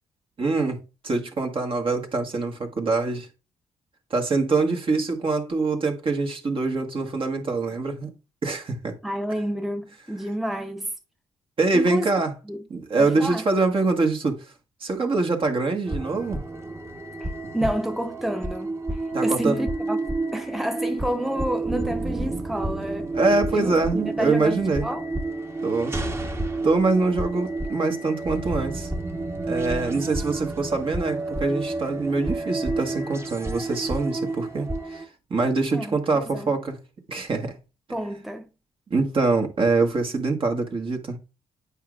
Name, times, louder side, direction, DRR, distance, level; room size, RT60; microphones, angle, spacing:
voice 1, 0.4-0.8 1.0-3.3 4.1-8.1 8.4-8.9 11.6-12.3 12.7-14.5 14.8-16.4 19.1-19.6 23.1-24.9 25.6-26.0 26.6-28.9 29.4-35.0 35.3-36.8 37.1-37.6 38.9-41.2, right 3 dB, 50° right, 1.6 m, -24 dB
voice 2, 9.0-10.9 11.7-12.1 12.5-12.6 13.0-13.4 17.2-20.0 20.3-23.1 23.5-25.1 35.7-36.5 37.9-38.5, right 1 dB, ahead, 0.9 m, -29 dB
sound 1, 15.9-35.0, right 2 dB, 20° right, 1.2 m, -30 dB
8.7 x 4.9 x 2.5 m
supercardioid pair, 55°, 12 cm